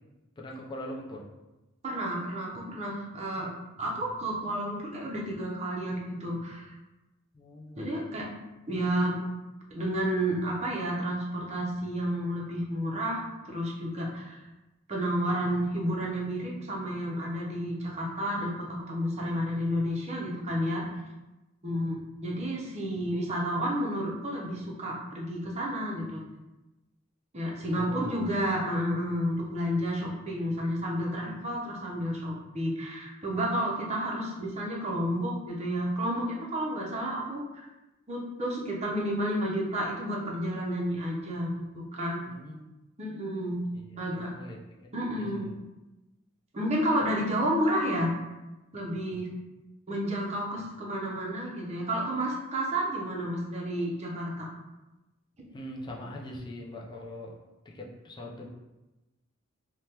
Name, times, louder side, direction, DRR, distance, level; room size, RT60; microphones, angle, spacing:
voice 1, 0.4-1.3 3.4-3.6 3.9-4.0 7.3-7.9 27.7-28.2 42.3-42.8 43.1-43.2 43.9-44.6 45.1-45.5 55.5-57.4 57.7-58.5, left 1 dB, 20° left, -2 dB, 0.4 m, -42 dB
voice 2, 1.8-3.5 3.8-6.7 7.8-8.3 8.7-9.2 9.7-14.4 14.9-20.8 21.6-22.0 22.2-26.2 27.3-37.4 38.1-42.2 43.0-43.6 44.0-44.3 44.9-45.5 46.5-48.1 48.7-49.3 49.9-54.5, equal, 35° right, -3 dB, 0.6 m, -31 dB
3.3 x 2.2 x 2.8 m, 1.0 s
head